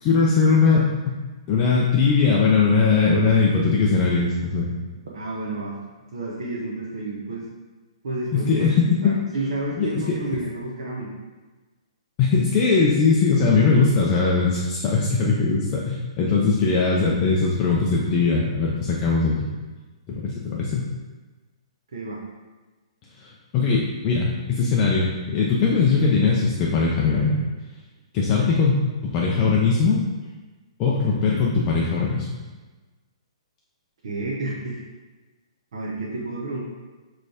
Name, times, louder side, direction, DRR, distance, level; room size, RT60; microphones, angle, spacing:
voice 1, 0.0-1.2 1.5-4.7 8.3-9.2 9.8-10.4 12.2-19.3 20.1-20.9 23.2-27.4 28.1-28.8 29.0-30.0 30.8-32.3, left 4 dB, 15° left, -3 dB, 0.4 m, -20 dB
voice 2, 5.1-5.8 6.1-7.5 8.0-8.5 8.9-11.2 21.9-22.2 34.0-34.8 35.7-36.6, right 2 dB, 55° right, -5 dB, 1.0 m, -30 dB
6.6 x 3.2 x 4.8 m, 1.3 s
hypercardioid pair, 180°, 3 cm